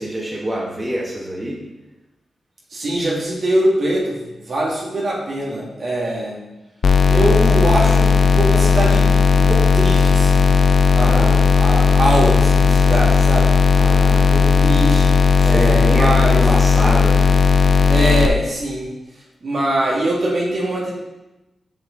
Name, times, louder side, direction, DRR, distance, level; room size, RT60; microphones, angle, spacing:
voice 1, 0.0-1.6 11.0-11.4 13.8-14.3 15.4-17.3, right 1 dB, 25° right, -4 dB, 2.2 m, -26 dB
voice 2, 2.7-6.4 7.1-10.5 10.9-13.5 14.3-15.1 15.4-16.4 17.9-18.9 19.4-20.9, right 1 dB, 60° right, -5 dB, 2.3 m, -22 dB
sound 1, 6.8-18.3, left 5 dB, 65° left, 0.5 m, -14 dB
7.2 x 6.0 x 4.2 m, 0.99 s
supercardioid pair, 50°, 0 cm